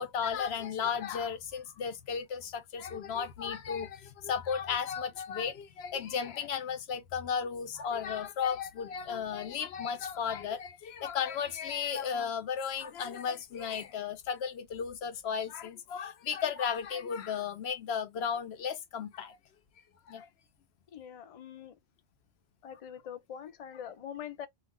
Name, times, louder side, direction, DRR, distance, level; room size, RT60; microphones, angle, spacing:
voice 1, 0.0-19.4 20.1-20.3, left 7 dB, 80° left, 0.8 m, -34 dB
voice 2, 20.9-21.7 22.6-24.5, left 9 dB, 50° left, 0.5 m, -43 dB
2.4 x 2.3 x 3.5 m
omnidirectional pair, 1.0 m